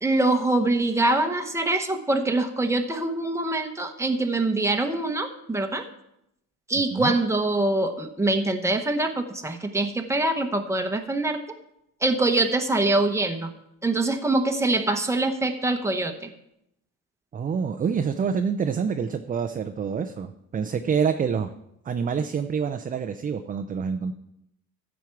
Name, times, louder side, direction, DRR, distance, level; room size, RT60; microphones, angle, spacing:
voice 1, 0.0-5.8 6.7-11.4 12.0-13.5 13.8-16.3, right 2 dB, 10° right, 5 dB, 1.0 m, -24 dB
voice 2, 17.3-21.5 21.9-24.1, right 6 dB, 25° right, 7 dB, 0.5 m, -27 dB
14.0 x 7.3 x 4.6 m, 0.80 s
cardioid pair, 140°, 34 cm